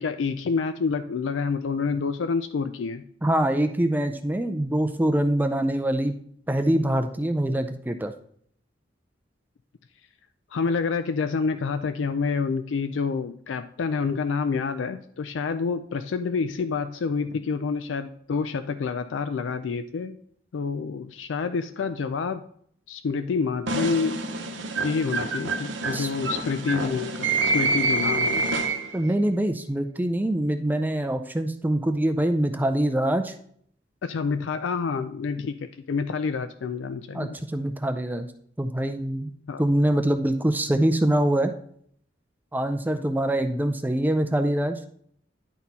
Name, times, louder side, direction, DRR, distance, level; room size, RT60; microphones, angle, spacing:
voice 1, 0.0-3.0 10.5-20.2 20.5-22.4 22.9-24.2 24.8-28.6 34.0-37.4 39.5-39.6, left 5 dB, 85° left, 10 dB, 0.4 m, -28 dB
voice 2, 3.2-6.2 6.5-8.1 25.9-26.1 28.9-33.3 37.1-38.3 38.6-39.3 39.6-41.5 42.5-44.8, right 1 dB, 10° right, 7 dB, 0.4 m, -24 dB
sound 1, 23.7-29.1, right 3 dB, 90° right, 0.9 m, -27 dB
10.5 x 4.3 x 4.1 m, 0.63 s
head